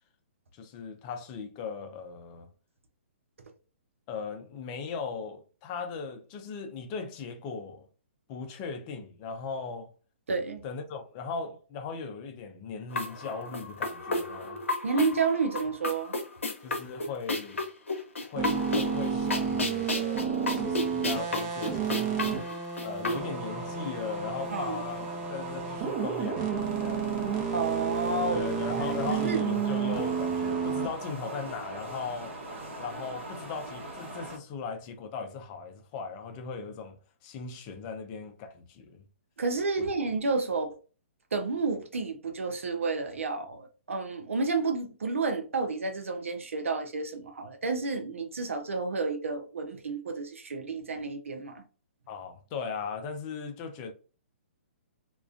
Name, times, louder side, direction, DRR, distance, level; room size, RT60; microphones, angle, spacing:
voice 1, 0.5-2.5 4.1-7.9 8.3-9.9 10.6-14.6 16.6-17.6 18.2-22.5 22.8-27.2 28.3-32.4 32.8-37.0 37.2-39.0 39.8-39.9 52.1-53.9, left 5 dB, 30° left, 0.4 m, -38 dB
voice 2, 10.3-10.6 14.8-16.1 24.5-24.8 27.5-29.4 39.4-40.7 41.3-51.6, right 4 dB, 85° right, 0.6 m, -30 dB
sound 1, 12.9-23.2, left 2 dB, 85° left, 0.7 m, -33 dB
sound 2, 18.3-30.9, right 6 dB, 35° right, 0.8 m, -31 dB
sound 3, 23.1-34.4, right 2 dB, 65° right, 1.1 m, -41 dB
2.3 x 2.2 x 2.4 m
hypercardioid pair, 140°, 7 cm